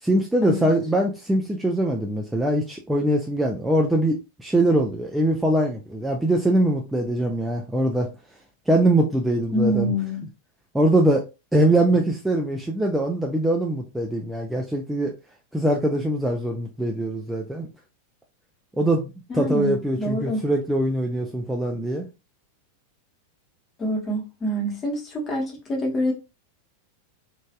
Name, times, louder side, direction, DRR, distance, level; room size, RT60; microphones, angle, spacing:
voice 1, 0.0-8.1 8.7-9.9 10.7-11.2 11.5-15.2 15.5-17.7 18.8-22.1, right 1 dB, 5° right, 0.4 m, -22 dB
voice 2, 9.5-10.2 19.3-20.4 23.8-26.1, equal, 25° left, 1.2 m, -26 dB
3.1 x 2.5 x 2.3 m
figure-of-eight pair, 90°, 0 cm